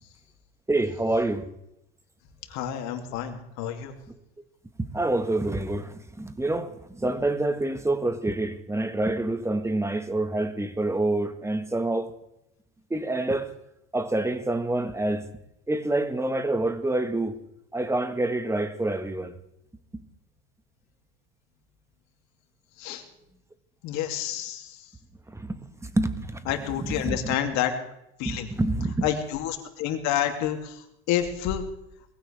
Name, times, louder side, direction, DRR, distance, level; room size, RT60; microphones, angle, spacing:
voice 1, 0.7-1.5 4.8-12.1 12.9-13.5 13.9-15.3 15.7-17.4 17.7-19.3 19.9-20.0 25.3-26.5 26.8-27.3 28.2-29.1, right 2 dB, 10° right, 9 dB, 1.6 m, -27 dB
voice 2, 2.5-3.9 22.8-23.0 23.8-24.9 26.5-27.7 28.2-28.5 29.0-31.6, left 10 dB, 60° left, 4 dB, 2.8 m, -29 dB
21.5 x 15.5 x 3.5 m, 0.84 s
supercardioid pair, 95°, 31 cm